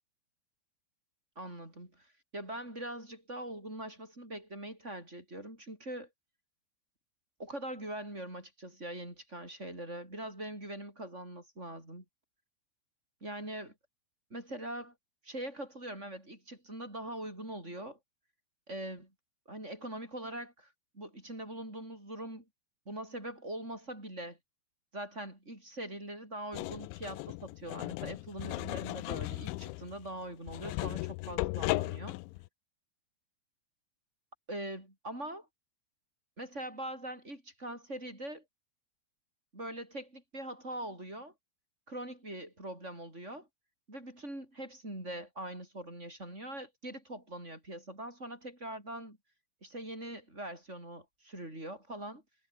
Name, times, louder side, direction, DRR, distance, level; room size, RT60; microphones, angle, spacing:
voice 1, 1.4-6.1 7.4-12.0 13.2-13.7 14.3-14.9 15.2-18.0 18.7-19.1 19.5-22.4 22.9-24.4 24.9-32.2 34.5-35.5 36.4-38.4 39.5-41.3 41.9-43.5 43.9-49.2 49.6-52.2, right 1 dB, 15° right, 7.7 m, -42 dB
sound 1, 26.5-32.5, left 23 dB, 85° left, 2.7 m, -36 dB
omnidirectional pair, 5.9 m